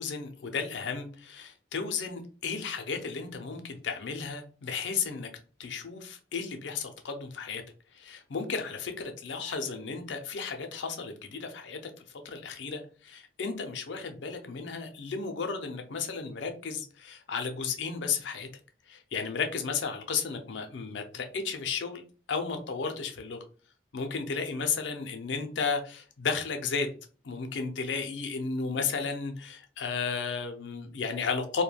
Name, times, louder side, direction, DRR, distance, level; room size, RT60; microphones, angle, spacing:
voice 1, 0.0-5.3 5.6-7.6 7.9-18.5 18.9-22.0 22.3-23.4 23.9-26.9 27.2-31.6, left 5 dB, 85° left, 6 dB, 0.5 m, -34 dB
2.2 x 2.1 x 3.2 m, 0.39 s
head